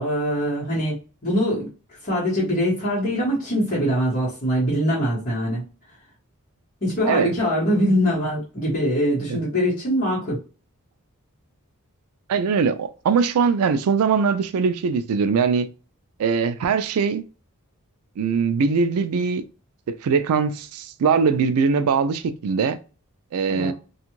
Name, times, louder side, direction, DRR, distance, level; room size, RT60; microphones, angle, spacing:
voice 1, 0.0-1.7 2.0-5.6 6.8-10.4 23.5-23.7, equal, 40° left, 1.2 m, -23 dB
voice 2, 12.3-15.7 16.2-17.2 18.2-19.4 19.9-22.8 23.3-23.7, right 5 dB, 75° right, 0.3 m, -21 dB
2.5 x 2.3 x 3.0 m
head